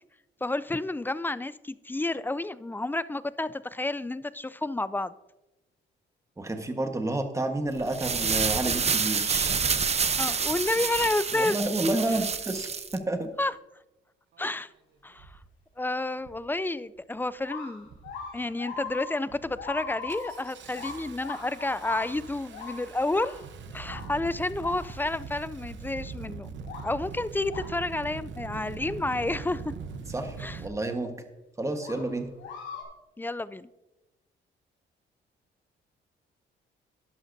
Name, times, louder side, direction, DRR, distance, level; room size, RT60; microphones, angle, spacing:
voice 1, 0.4-5.1 10.2-11.6 13.4-13.5 14.4-14.7 15.0-15.3 15.8-17.9 18.3-23.3 23.7-26.5 26.8-29.7 30.4-30.6 33.2-33.7, left 2 dB, 10° left, 17 dB, 0.3 m, -30 dB
voice 2, 6.4-9.6 11.3-13.3 30.1-31.1 31.6-32.3, right 2 dB, 15° right, 6 dB, 1.3 m, -30 dB
sound 1, 7.8-13.0, right 6 dB, 35° right, 0.7 m, -28 dB
Engine starting, 14.3-14.4 15.2-15.5 16.2-16.5 16.9-17.4 17.8-18.4 18.8-19.0 19.3-30.7, right 5 dB, 65° right, 0.9 m, -42 dB
sound 2, 17.4-25.2 25.8-25.9 26.6-27.0 27.5-27.8 30.2-30.3 31.8-32.8, left 5 dB, 85° left, 2.8 m, -40 dB
11.5 x 11.0 x 2.7 m, 1.0 s
cardioid pair, 90°, 20 cm